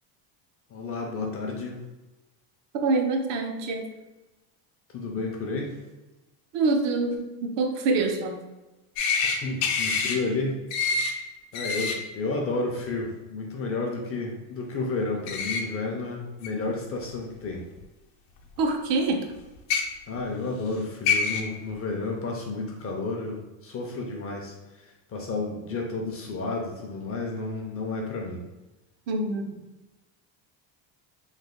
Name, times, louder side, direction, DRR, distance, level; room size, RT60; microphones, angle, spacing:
voice 1, 0.7-1.8 4.9-5.8 9.2-10.9 11.5-17.7 20.1-28.4, left 3 dB, 30° left, 0 dB, 0.4 m, -31 dB
voice 2, 2.8-3.9 6.5-8.4 18.6-19.3 29.1-29.5, right 3 dB, 65° right, 4 dB, 0.6 m, -25 dB
sound 1, 9.0-9.3 9.6-10.1 10.7-11.1 11.5-11.9 15.3-15.6 16.4-16.5 17.8-17.9 19.6-19.8 20.7-20.8 21.1-21.4, left 5 dB, 80° left, 0.7 m, -25 dB
3.2 x 2.1 x 3.6 m, 1.1 s
cardioid pair, 140°, 47 cm